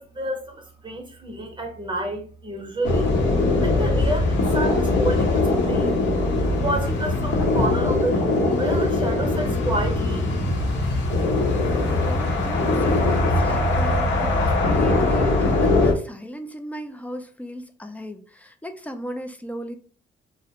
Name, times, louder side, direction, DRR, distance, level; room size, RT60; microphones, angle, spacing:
voice 1, 0.0-3.1 3.6-5.9 6.6-10.3, right 1 dB, 25° right, 0.7 m, -29 dB
sound 1, 2.8-15.9, left 2 dB, 70° left, 0.8 m, -21 dB
voice 2, 11.6-19.7, equal, 10° left, 0.3 m, -36 dB
2.4 x 2.0 x 2.8 m
cardioid pair, 90°, 20 cm